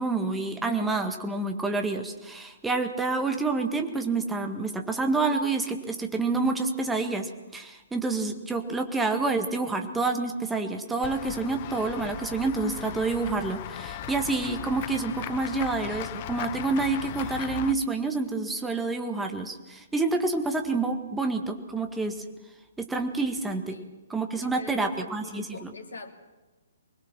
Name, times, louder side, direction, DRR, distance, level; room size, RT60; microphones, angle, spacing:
voice 1, 0.0-22.2 22.8-23.8 24.1-25.7, right 3 dB, 5° right, 5 dB, 1.8 m, -28 dB
Run / Walk footsteps / Bell, 11.0-17.7, left 13 dB, 35° left, 0.7 m, -38 dB
sound 1, 11.8-14.7 17.1-17.6, equal, 25° right, 3.4 m, -48 dB
voice 2, 24.4-26.1, left 3 dB, 65° left, 5 dB, 2.7 m, -43 dB
25.0 x 21.0 x 6.1 m, 1.1 s
figure-of-eight pair, 125°, 0 cm